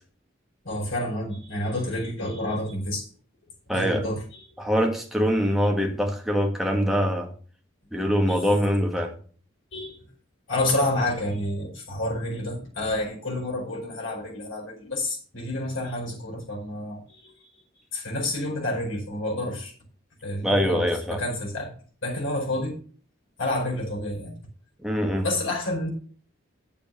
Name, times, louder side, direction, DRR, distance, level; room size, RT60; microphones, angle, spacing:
voice 1, 0.6-3.1 3.7-4.5 8.3-8.6 9.7-10.0 10.5-17.5 17.9-19.7 20.2-20.8 21.1-21.7 22.0-22.8 23.4-24.4 25.2-25.9, left 1 dB, 80° left, -1 dB, 5.0 m, -29 dB
voice 2, 3.7-4.0 4.6-7.3 7.9-9.1 20.4-21.2 24.8-25.3, equal, ahead, 1 dB, 1.6 m, -23 dB
8.4 x 7.0 x 6.3 m, 0.42 s
head